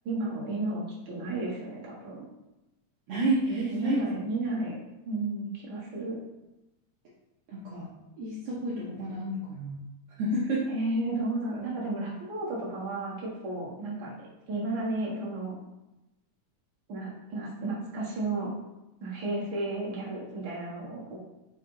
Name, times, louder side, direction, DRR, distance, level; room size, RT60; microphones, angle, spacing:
voice 1, 0.0-2.3 3.5-4.7 5.0-6.2 10.7-15.6 16.9-18.5 19.0-21.2, right 2 dB, 45° right, -5 dB, 1.4 m, -33 dB
voice 2, 3.1-4.0 7.5-7.9 8.2-9.8 10.2-10.7, right 1 dB, 75° right, -6 dB, 1.3 m, -30 dB
5.5 x 4.6 x 3.9 m, 0.99 s
omnidirectional pair, 3.8 m